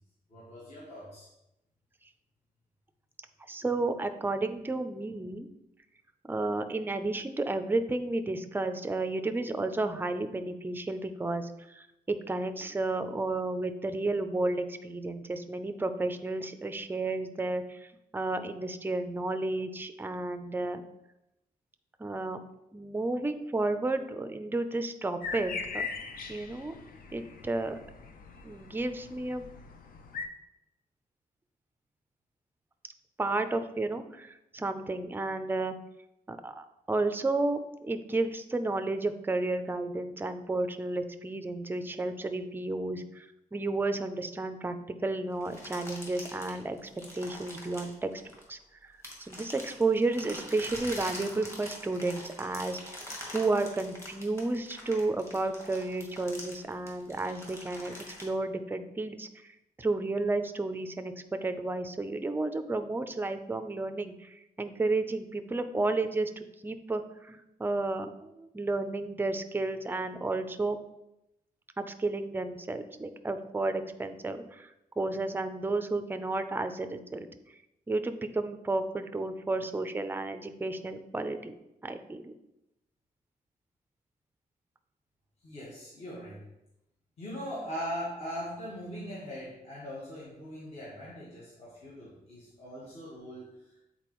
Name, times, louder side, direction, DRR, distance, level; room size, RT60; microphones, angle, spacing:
voice 1, 0.3-1.3 85.4-86.4 87.2-93.8, equal, 45° left, -6 dB, 1.5 m, -40 dB
voice 2, 3.5-5.5 6.2-20.8 22.0-22.4 22.7-25.9 26.3-26.8 27.1-27.8 28.4-29.4 33.2-35.8 36.3-44.7 45.0-48.1 48.5-57.9 58.2-70.8 71.8-74.7 75.0-77.3 77.9-81.5 81.8-82.3, right 2 dB, 15° right, 8 dB, 0.4 m, -32 dB
sound 1, 25.2-30.3, left 4 dB, 70° left, 0.6 m, -40 dB
sound 2, 45.4-48.6 49.0-58.2, equal, 15° left, 1.6 m, -44 dB
8.6 x 4.2 x 3.0 m, 0.88 s
wide cardioid pair, 155°, 15 cm